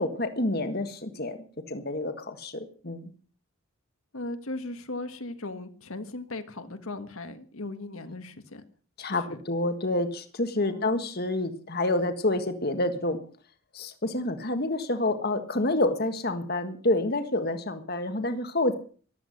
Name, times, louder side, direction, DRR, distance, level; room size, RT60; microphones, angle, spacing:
voice 1, 0.0-1.4 1.7-3.1 9.0-13.2 13.7-18.7, left 2 dB, 45° left, 8 dB, 1.5 m, -28 dB
voice 2, 4.1-8.6 9.0-9.4 10.5-11.0, left 2 dB, 70° left, 9 dB, 1.6 m, -38 dB
15.0 x 12.5 x 6.6 m, 0.43 s
head